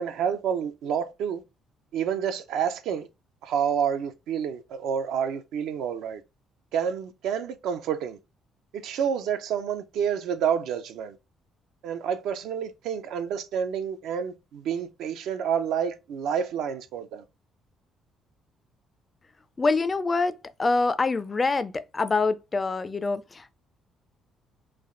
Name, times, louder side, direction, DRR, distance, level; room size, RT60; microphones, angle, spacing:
voice 1, 0.0-1.4 1.9-3.1 3.4-6.2 6.7-8.2 8.7-11.2 11.8-17.2, right 8 dB, 80° right, 0.5 m, -29 dB
voice 2, 19.6-23.5, left 3 dB, 25° left, 0.3 m, -25 dB
3.3 x 2.4 x 3.7 m
cardioid pair, 125°, 0 cm